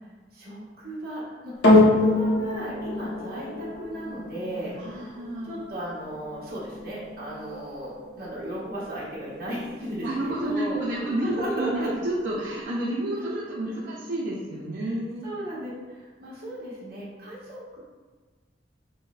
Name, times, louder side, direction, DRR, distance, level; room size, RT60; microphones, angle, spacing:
voice 1, 0.3-5.1 5.4-11.9 13.2-13.8 14.7-15.0 15.2-17.8, right 1 dB, 60° right, -7 dB, 1.0 m, -36 dB
sound 1, 1.6-10.2 10.9-11.0, left 2 dB, 75° left, 0.8 m, -26 dB
voice 2, 4.7-5.5 10.0-15.3, right 1 dB, 75° right, -5 dB, 0.5 m, -30 dB
6.1 x 2.1 x 2.4 m, 1.4 s
head